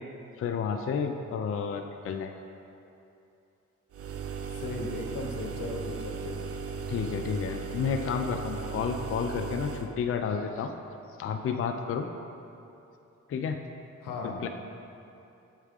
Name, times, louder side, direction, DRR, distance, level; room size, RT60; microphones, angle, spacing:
voice 1, 0.4-2.4 6.9-10.7 11.2-12.1 13.3-13.6 14.4-14.5, left 6 dB, 45° left, 5 dB, 0.4 m, -31 dB
sound 1, 3.9-9.9, right 5 dB, 45° right, 0.5 m, -36 dB
voice 2, 4.5-6.4 14.0-14.5, left 3 dB, 85° left, 1 dB, 0.7 m, -37 dB
8.1 x 3.3 x 3.5 m, 2.7 s
supercardioid pair, 45°, 32 cm